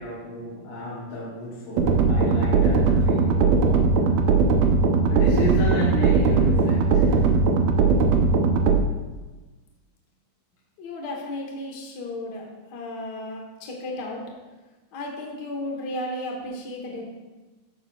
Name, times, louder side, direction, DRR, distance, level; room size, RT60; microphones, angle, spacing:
voice 1, 0.0-4.0 5.1-7.3, equal, 55° left, -8 dB, 2.4 m, -32 dB
sound 1, 1.8-8.8, right 4 dB, 80° right, 1.5 m, -19 dB
voice 2, 10.8-14.2 14.9-17.2, left 1 dB, 70° left, 0 dB, 0.9 m, -34 dB
12.0 x 7.2 x 2.4 m, 1.2 s
omnidirectional pair, 3.9 m